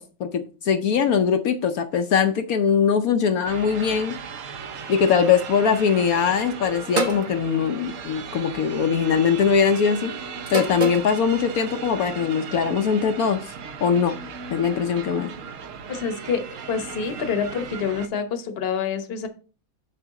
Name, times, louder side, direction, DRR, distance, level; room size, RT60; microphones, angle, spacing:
voice 1, 0.0-4.2 4.9-10.1 10.5-13.4 13.8-14.1 14.5-15.3, left 6 dB, 65° left, 8 dB, 0.9 m, -21 dB
sound 1, 3.4-18.1, right 6 dB, 60° right, 0.8 m, -37 dB
sound 2, 7.0-7.3 8.5-8.8 10.5-11.1, right 3 dB, 30° right, 1.0 m, -26 dB
voice 2, 15.9-16.4 16.7-19.3, left 6 dB, 40° left, 7 dB, 0.9 m, -27 dB
7.0 x 6.9 x 3.6 m, 0.36 s
omnidirectional pair, 2.1 m